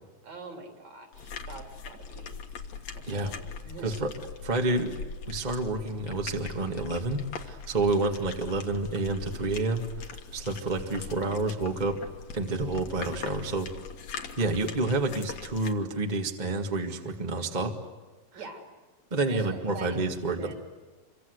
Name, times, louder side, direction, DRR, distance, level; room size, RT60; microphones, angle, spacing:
voice 1, 0.2-2.3 2.9-3.9 18.3-18.7 19.3-20.5, right 3 dB, 55° right, 2 dB, 4.5 m, -44 dB
sound 1, 1.1-15.7, left 5 dB, 60° left, 2.6 m, -41 dB
voice 2, 4.4-4.9 5.3-11.9 12.3-13.7 14.4-17.7 19.1-20.5, right 2 dB, 20° right, 3 dB, 1.2 m, -29 dB
27.5 x 24.5 x 8.1 m, 1.2 s
omnidirectional pair, 3.9 m